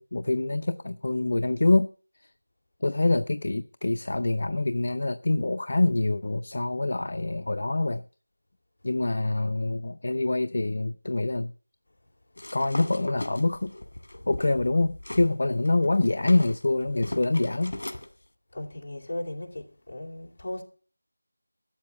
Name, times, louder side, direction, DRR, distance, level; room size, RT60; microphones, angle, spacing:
voice 1, 0.0-1.9 2.8-8.0 8.8-11.5 12.5-13.7 14.3-17.7, left 2 dB, 45° left, 0.6 m, -25 dB
sound 1, 12.4-15.3 15.6-18.1, left 1 dB, 65° left, 2.0 m, -38 dB
voice 2, 18.5-20.6, left 1 dB, 25° left, 2.7 m, -36 dB
13.0 x 7.9 x 7.0 m
figure-of-eight pair, 175°, 0 cm